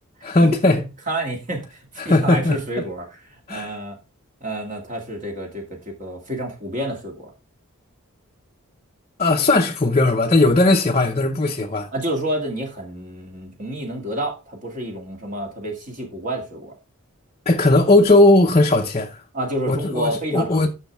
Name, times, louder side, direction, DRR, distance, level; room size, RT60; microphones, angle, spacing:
voice 1, 0.2-0.8 2.0-2.6 3.5-3.8 9.2-11.9 17.5-19.2 19.7-20.7, left 2 dB, 30° left, 0.8 m, -17 dB
voice 2, 1.1-3.2 3.5-4.0 4.4-7.3 11.9-16.7 19.3-20.7, right 1 dB, 35° right, 2.1 m, -29 dB
10.5 x 6.5 x 3.5 m
head